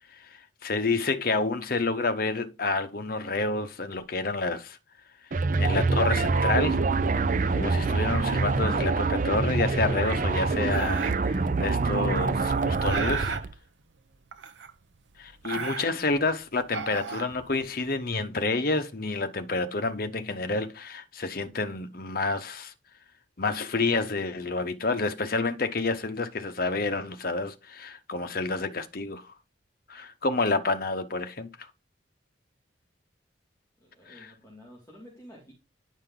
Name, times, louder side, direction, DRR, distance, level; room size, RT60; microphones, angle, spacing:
voice 1, 0.3-4.8 5.6-6.8 7.5-13.4 15.2-22.7 23.4-29.2 29.9-31.5 34.1-34.3, left 3 dB, 50° left, 0.9 m, -29 dB
sound 1, 5.3-13.5, right 3 dB, 45° right, 0.5 m, -25 dB
sound 2, 10.7-11.4 12.2-13.5 14.3-15.0 15.3-16.2 16.6-17.8, right 5 dB, 70° right, 0.8 m, -34 dB
voice 2, 33.8-35.5, equal, 15° left, 2.3 m, -51 dB
10.0 x 5.2 x 3.8 m
head